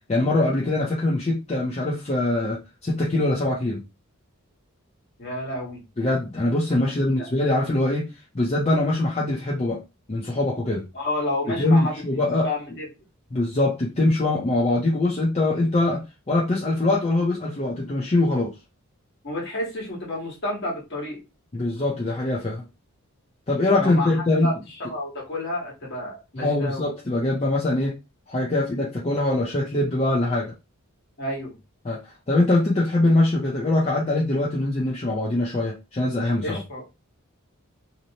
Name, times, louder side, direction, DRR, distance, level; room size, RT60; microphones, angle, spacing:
voice 1, 0.1-3.8 6.0-8.0 8.3-9.8 10.1-10.8 11.6-12.5 13.3-16.0 16.3-18.5 21.5-22.6 23.5-24.5 26.4-27.9 28.3-30.5 31.8-36.6, left 2 dB, 30° left, -5 dB, 0.6 m, -23 dB
voice 2, 5.2-5.8 6.9-7.3 10.9-11.9 12.4-12.8 19.2-21.2 23.8-24.1 24.4-24.5 24.9-26.8 31.2-31.5 36.4-36.8, left 1 dB, 50° left, -3 dB, 1.3 m, -30 dB
2.8 x 2.1 x 2.8 m, 0.26 s
head